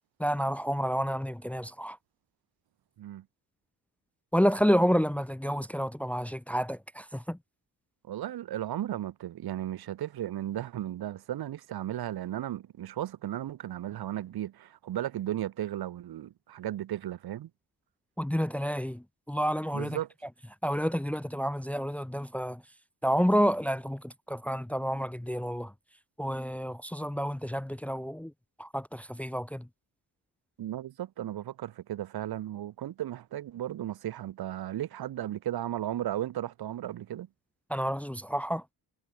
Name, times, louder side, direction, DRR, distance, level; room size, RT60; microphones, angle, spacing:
voice 1, 0.2-2.0 4.3-7.4 18.2-20.0 20.6-22.6 23.0-25.7 26.2-28.3 28.6-29.7 37.7-38.6, equal, 5° left, 1.0 m, -29 dB
voice 2, 8.1-17.5 19.7-20.1 30.6-37.3, right 12 dB, 75° right, 3.6 m, -35 dB
cardioid pair, 100°, 37 cm